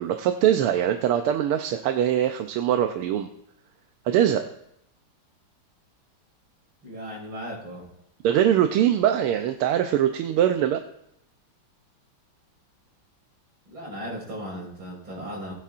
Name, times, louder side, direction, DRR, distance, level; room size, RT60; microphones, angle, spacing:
voice 1, 0.0-3.3 4.0-4.4 8.2-10.8, right 10 dB, 90° right, 6 dB, 1.6 m, -22 dB
voice 2, 6.8-7.9 13.7-15.5, equal, 70° right, -4 dB, 5.6 m, -36 dB
19.5 x 8.6 x 2.5 m, 0.78 s
omnidirectional pair, 2.4 m